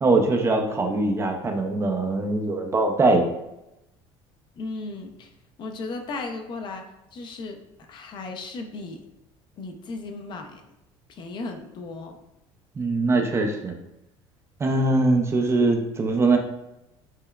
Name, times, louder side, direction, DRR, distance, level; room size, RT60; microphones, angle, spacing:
voice 1, 0.0-3.3 12.8-13.7 14.6-16.4, right 2 dB, 25° right, 3 dB, 0.4 m, -22 dB
voice 2, 4.6-5.3 5.6-7.6 7.9-9.0 9.6-10.6 11.1-12.2, left 3 dB, 45° left, 4 dB, 0.5 m, -35 dB
5.5 x 2.1 x 2.2 m, 0.89 s
cardioid pair, 120°, 11 cm